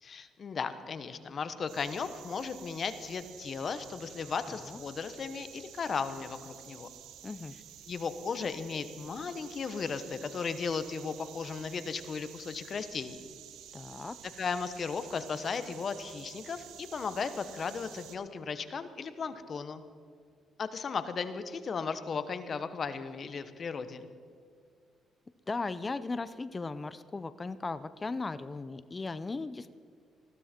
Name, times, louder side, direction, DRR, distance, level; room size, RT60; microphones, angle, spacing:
voice 1, 0.0-6.9 7.9-13.2 14.4-19.8 20.6-24.1, left 5 dB, 45° left, 11 dB, 1.2 m, -36 dB
sound 1, 1.7-18.2, right 10 dB, 90° right, 1.2 m, -51 dB
voice 2, 4.5-4.8 7.2-7.5 13.7-14.2 25.5-29.7, left 3 dB, 25° left, 14 dB, 0.6 m, -37 dB
20.0 x 15.0 x 4.5 m, 2.2 s
cardioid pair, 90°, 0 cm